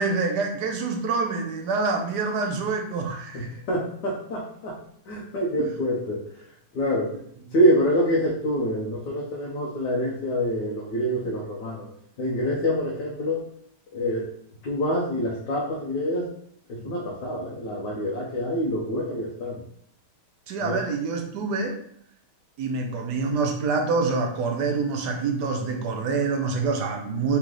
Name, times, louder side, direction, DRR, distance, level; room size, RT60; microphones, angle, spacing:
voice 1, 0.0-3.6 12.5-12.6 16.8-16.9 20.5-21.8 22.6-27.4, right 4 dB, 80° right, 3 dB, 1.2 m, -26 dB
voice 2, 3.3-4.8 5.1-6.4 6.7-7.2 7.5-11.9 12.2-13.4 13.9-14.3 14.6-16.3 16.7-19.6 20.6-20.8, equal, 85° left, -4 dB, 1.4 m, -26 dB
3.7 x 3.1 x 3.7 m, 0.65 s
omnidirectional pair, 1.8 m